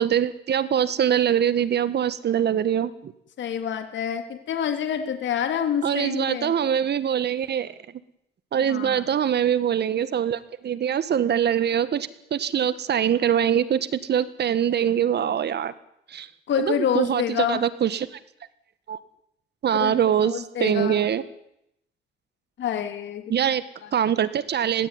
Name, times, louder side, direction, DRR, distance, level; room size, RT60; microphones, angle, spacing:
voice 1, 0.0-3.1 5.8-7.7 8.5-15.7 16.1-16.3 16.6-18.1 18.9-19.0 19.6-21.2 23.3-23.6 23.9-24.9, right 9 dB, 55° right, 14 dB, 1.8 m, -23 dB
voice 2, 3.4-6.5 8.6-9.1 16.5-17.6 19.8-19.9 20.2-21.0 22.6-23.2 23.8-23.9, left 9 dB, 70° left, 6 dB, 3.0 m, -27 dB
21.5 x 16.0 x 9.8 m, 0.77 s
cardioid pair, 90°, 20 cm